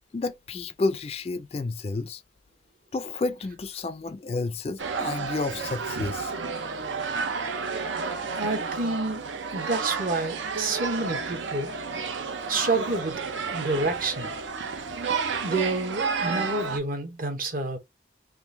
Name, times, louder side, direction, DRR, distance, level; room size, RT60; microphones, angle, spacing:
voice 1, 0.1-2.2 2.9-6.3, left 3 dB, 30° left, 0.3 m, -30 dB
sound 1, 4.8-16.8, right 5 dB, 80° right, 0.6 m, -31 dB
voice 2, 8.3-11.7 12.5-13.2 13.5-14.3 15.4-17.8, right 3 dB, 45° right, 0.8 m, -29 dB
3.6 x 2.6 x 2.5 m
head